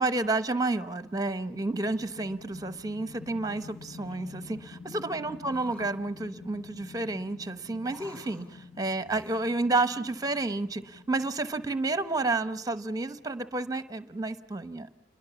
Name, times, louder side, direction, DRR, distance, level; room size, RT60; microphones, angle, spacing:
voice 1, 0.0-14.9, right 2 dB, 20° right, 12 dB, 0.9 m, -30 dB
sound 1, 1.0-13.3, left 4 dB, 55° left, 1.0 m, -49 dB
sound 2, 3.7-4.7 5.3-6.0 7.7-8.7 9.0-10.9 11.3-11.8, left 1 dB, 5° left, 4.1 m, -55 dB
28.5 x 21.5 x 7.0 m, 0.83 s
head